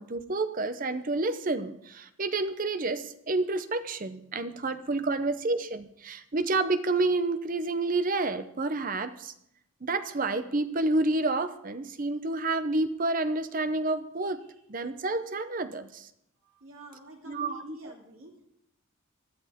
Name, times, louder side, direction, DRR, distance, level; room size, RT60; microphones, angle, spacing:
voice 1, 0.0-9.3 9.8-14.4 14.7-16.1 17.3-17.9, right 2 dB, 40° right, 11 dB, 0.7 m, -29 dB
voice 2, 16.6-18.3, right 1 dB, 65° right, 0 dB, 3.0 m, -47 dB
20.0 x 12.0 x 3.6 m, 0.75 s
head